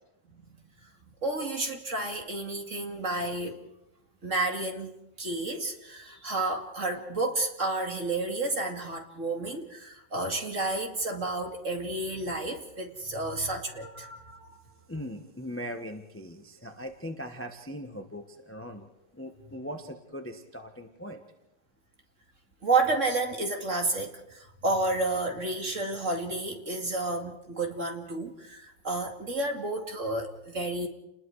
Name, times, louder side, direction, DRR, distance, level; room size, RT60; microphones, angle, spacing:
voice 1, 0.3-0.6 1.2-3.6 4.2-14.5 22.6-30.9, right 2 dB, 35° right, 3 dB, 2.6 m, -31 dB
voice 2, 14.9-21.2, equal, 10° left, 5 dB, 1.0 m, -40 dB
30.0 x 20.5 x 4.8 m, 0.92 s
omnidirectional pair, 2.3 m